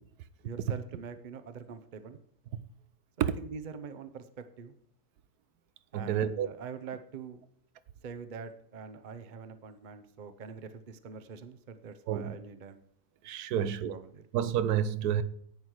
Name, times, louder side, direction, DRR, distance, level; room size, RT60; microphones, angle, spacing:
voice 1, 0.4-2.2 3.2-4.8 5.9-7.4 8.0-12.8 13.6-14.2, right 5 dB, 40° right, 0.8 m, -44 dB
voice 2, 5.9-6.5 12.1-12.3 13.2-13.9 14.3-15.2, right 9 dB, 85° right, 1.2 m, -29 dB
10.5 x 9.4 x 4.7 m
omnidirectional pair, 1.6 m